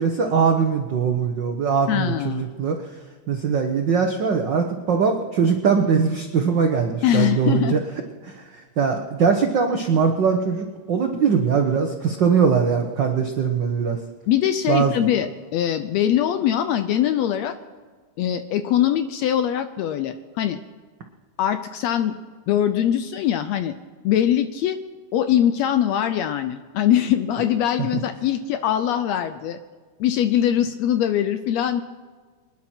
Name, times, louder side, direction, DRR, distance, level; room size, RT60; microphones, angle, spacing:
voice 1, 0.0-2.8 3.3-7.8 8.2-14.0 14.7-14.9, right 6 dB, 80° right, 4 dB, 1.0 m, -21 dB
voice 2, 1.9-2.4 7.0-7.8 14.3-17.6 18.2-20.6 21.4-22.2 22.5-23.7 24.0-24.8 25.1-29.6 30.0-31.8, left 10 dB, 80° left, 10 dB, 1.6 m, -22 dB
25.5 x 10.5 x 4.4 m, 1.5 s
omnidirectional pair, 3.5 m